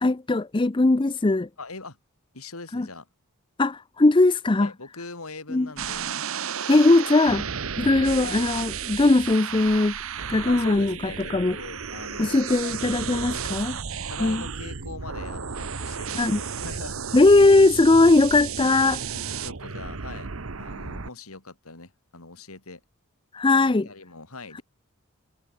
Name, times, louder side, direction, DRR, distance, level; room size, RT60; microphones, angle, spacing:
voice 1, 0.0-1.5 2.7-2.9 3.6-4.7 5.5-5.7 6.7-7.4 7.8-10.0 10.3-11.6 12.2-13.8 14.2-14.4 16.2-16.4 17.1-19.0 23.3-23.9, left 2 dB, 20° left, 0.5 m, -19 dB
voice 2, 1.6-2.0 2.3-3.1 4.5-6.2 8.2-8.5 10.5-12.8 14.1-17.0 19.1-20.3 20.6-22.8 23.6-24.6, left 3 dB, 80° left, 3.4 m, -41 dB
sound 1, 5.8-21.1, right 6 dB, 70° right, 1.1 m, -33 dB
head